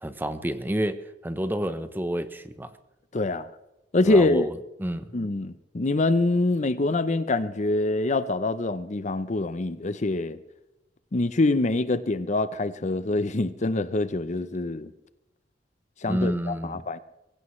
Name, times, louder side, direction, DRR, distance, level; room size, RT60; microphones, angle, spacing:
voice 1, 0.0-2.7 4.0-4.5 4.8-5.1 16.1-16.8, right 1 dB, 10° right, 0.8 m, -29 dB
voice 2, 3.1-3.5 3.9-4.5 5.1-10.4 11.1-14.9 16.0-17.0, left 2 dB, 40° left, 0.6 m, -25 dB
23.0 x 16.0 x 3.2 m
head